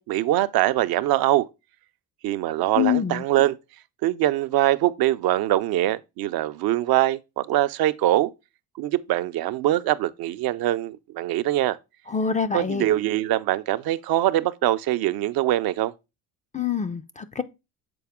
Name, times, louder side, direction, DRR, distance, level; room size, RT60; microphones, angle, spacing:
voice 1, 0.0-1.5 2.2-3.6 4.0-8.3 8.8-11.8 12.5-15.9, right 14 dB, 65° right, 0.5 m, -23 dB
voice 2, 2.8-3.2 12.1-12.9 16.5-17.4, left 7 dB, 20° left, 0.3 m, -25 dB
6.9 x 4.1 x 3.5 m
supercardioid pair, 85°, 41 cm